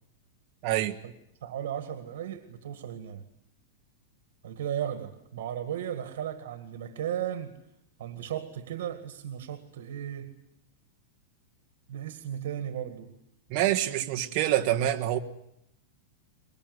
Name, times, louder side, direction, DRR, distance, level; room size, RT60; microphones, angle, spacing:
voice 1, 0.6-1.0 13.5-15.2, right 13 dB, 35° right, 3 dB, 1.6 m, -26 dB
voice 2, 1.4-3.2 4.4-7.6 8.0-10.3 11.9-13.1, right 10 dB, 70° right, 8 dB, 1.9 m, -35 dB
23.0 x 22.0 x 9.6 m, 0.80 s
supercardioid pair, 175°, 0 cm